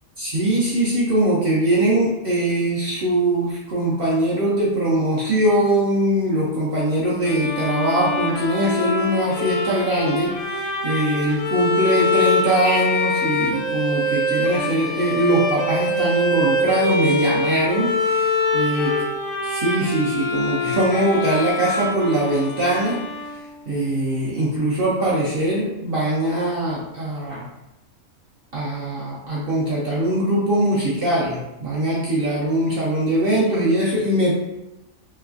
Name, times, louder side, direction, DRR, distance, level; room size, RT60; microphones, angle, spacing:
voice 1, 0.2-18.9 19.4-23.0 23.3-23.4 23.7-27.5 28.5-34.3, right 1 dB, 60° right, -6 dB, 0.6 m, -21 dB
Bowed string instrument, 7.2-23.8, left 2 dB, 65° left, 0.6 m, -24 dB
3.1 x 2.3 x 2.4 m, 0.94 s
omnidirectional pair, 1.4 m